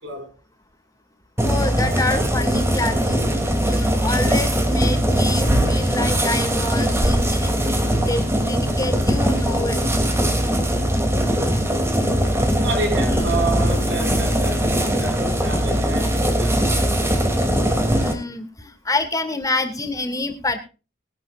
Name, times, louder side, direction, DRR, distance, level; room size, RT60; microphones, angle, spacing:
voice 1, 0.0-0.3 12.6-17.2, right 2 dB, 65° right, 5.5 m, -30 dB
sound 1, 1.4-18.1, equal, 15° right, 2.8 m, -20 dB
voice 2, 1.5-7.6 8.0-9.8 17.9-20.6, left 2 dB, 20° left, 2.1 m, -27 dB
21.5 x 11.0 x 2.5 m
head